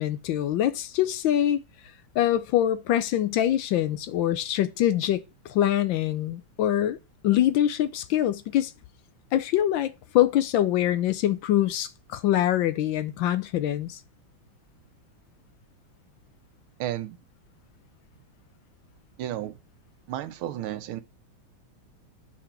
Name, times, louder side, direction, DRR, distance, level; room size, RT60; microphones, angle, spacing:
voice 1, 0.0-1.6 2.1-5.2 5.5-7.0 7.2-8.7 9.3-14.0, left 12 dB, 75° left, 1.2 m, -24 dB
voice 2, 16.8-17.2 19.2-19.6 20.1-21.0, right 12 dB, 80° right, 1.5 m, -32 dB
5.9 x 5.0 x 5.7 m
omnidirectional pair, 2.3 m